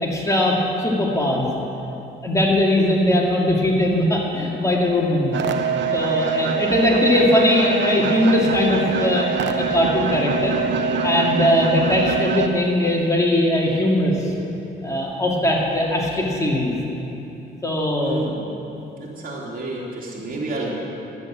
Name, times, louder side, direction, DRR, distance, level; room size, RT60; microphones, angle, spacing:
voice 1, 0.0-1.5 2.2-5.3 5.9-10.6 11.0-14.3 14.8-16.8 17.6-18.3, left 1 dB, 15° left, -3 dB, 2.2 m, -20 dB
sound 1, 5.3-12.5, right 5 dB, 65° right, 0.8 m, -24 dB
voice 2, 18.0-18.5 19.0-20.7, right 2 dB, 45° right, -4 dB, 3.2 m, -30 dB
11.5 x 8.2 x 7.4 m, 2.9 s
cardioid pair, 90°, 20 cm